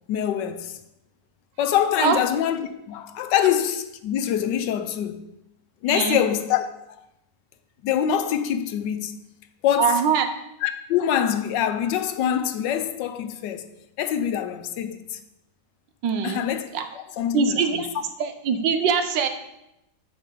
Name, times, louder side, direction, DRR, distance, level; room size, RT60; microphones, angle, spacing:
voice 1, 0.1-0.8 1.6-5.3 5.8-7.0 7.8-9.1 9.6-10.0 10.6-13.7 14.0-15.2 16.2-16.7 16.9-17.8, left 9 dB, 85° left, 1.3 m, -25 dB
voice 2, 5.9-6.2 9.8-10.3 16.0-16.4 16.7-16.8 17.3-17.9 18.2-19.3, right 6 dB, 85° right, 1.5 m, -22 dB
7.4 x 4.9 x 6.8 m
omnidirectional pair, 1.9 m